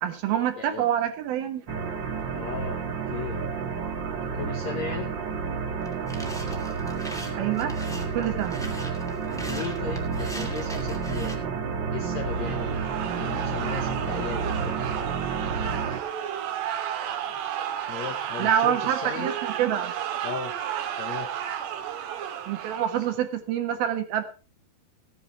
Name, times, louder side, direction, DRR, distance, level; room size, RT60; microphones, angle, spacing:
voice 1, 0.0-1.7 7.4-7.7 8.1-8.6 18.4-19.9 22.5-24.2, right 10 dB, 70° right, 6 dB, 2.9 m, -26 dB
voice 2, 0.6-0.9 2.3-3.4 4.2-5.1 9.4-11.4 11.9-14.8 17.9-19.3 20.2-20.6 21.0-21.3, left 7 dB, 80° left, 6 dB, 1.6 m, -36 dB
sound 1, 1.7-16.0, right 5 dB, 45° right, 1.5 m, -30 dB
sound 2, 5.8-11.3, equal, 5° left, 0.4 m, -40 dB
sound 3, 12.2-23.2, right 10 dB, 85° right, 3.5 m, -33 dB
15.0 x 9.8 x 4.4 m, 0.34 s
omnidirectional pair, 4.7 m